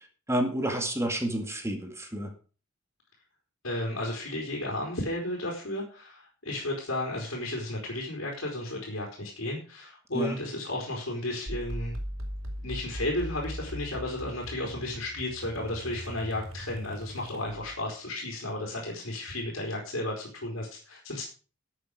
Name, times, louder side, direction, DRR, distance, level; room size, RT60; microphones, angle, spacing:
voice 1, 0.3-2.3 10.1-10.4, right 1 dB, 15° right, 4 dB, 2.2 m, -29 dB
voice 2, 3.6-11.9 12.6-21.2, left 1 dB, 75° left, -1 dB, 4.3 m, -33 dB
sound 1, 11.5-17.8, equal, 80° right, 4.4 m, -39 dB
13.0 x 8.5 x 5.0 m, 0.38 s
head